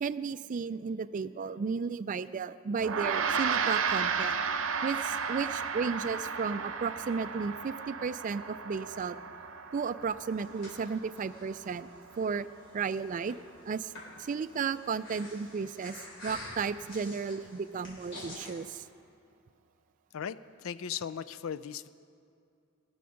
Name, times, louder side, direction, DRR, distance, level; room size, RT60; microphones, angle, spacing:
voice 1, 0.0-4.4 4.8-9.2 9.7-11.9 12.2-12.5 12.7-13.4 13.6-13.9 14.2-18.8, right 5 dB, 40° right, 14 dB, 0.3 m, -34 dB
Gong, 2.8-12.4, right 6 dB, 75° right, 0.7 m, -34 dB
Breathing, 10.0-18.5, left 1 dB, 60° left, 3.5 m, -48 dB
voice 2, 20.1-21.9, left 8 dB, 90° left, 14 dB, 0.4 m, -37 dB
19.5 x 6.9 x 6.4 m, 2.4 s
head